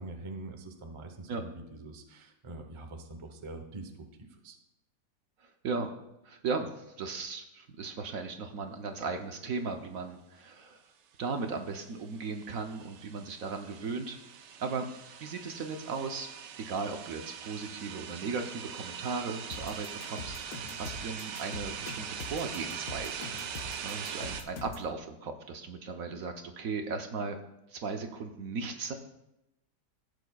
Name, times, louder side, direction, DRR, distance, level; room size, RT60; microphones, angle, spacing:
voice 1, 0.0-4.6, right 2 dB, 25° right, 5 dB, 0.6 m, -44 dB
voice 2, 5.4-5.9 6.2-10.8 11.2-14.2 14.6-14.9 15.2-16.3 16.6-23.2 23.8-27.4 27.7-28.9, right 4 dB, 60° right, 5 dB, 1.1 m, -37 dB
sound 1, 11.8-24.4, right 8 dB, 90° right, 1.4 m, -42 dB
sound 2, 19.5-24.9, left 3 dB, 60° left, 1.5 m, -43 dB
15.0 x 8.2 x 2.3 m, 0.88 s
omnidirectional pair, 1.8 m